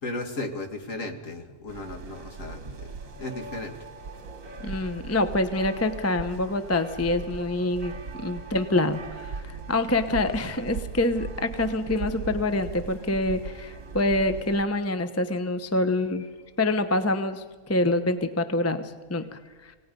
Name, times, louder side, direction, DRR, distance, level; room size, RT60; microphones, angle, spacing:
voice 1, 0.0-3.8 4.6-4.7, left 2 dB, 55° left, 5 dB, 2.3 m, -36 dB
sound 1, 1.7-14.6, right 4 dB, 60° right, 1.6 m, -39 dB
voice 2, 4.6-7.9 8.2-16.3 16.6-19.7, left 2 dB, 15° left, 9 dB, 0.8 m, -26 dB
27.0 x 18.0 x 5.3 m, 1.4 s
omnidirectional pair, 1.6 m